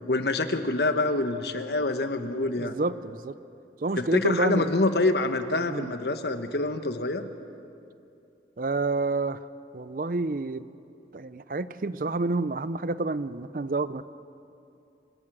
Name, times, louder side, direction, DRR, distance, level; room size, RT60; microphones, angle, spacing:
voice 1, 0.1-2.8 4.0-7.3, left 2 dB, 70° left, 8 dB, 1.2 m, -26 dB
voice 2, 2.4-3.3 3.8-4.7 5.7-5.9 8.6-9.4 9.7-10.7 11.1-14.0, right 3 dB, 50° right, 15 dB, 0.6 m, -29 dB
26.0 x 18.0 x 6.2 m, 2.6 s
head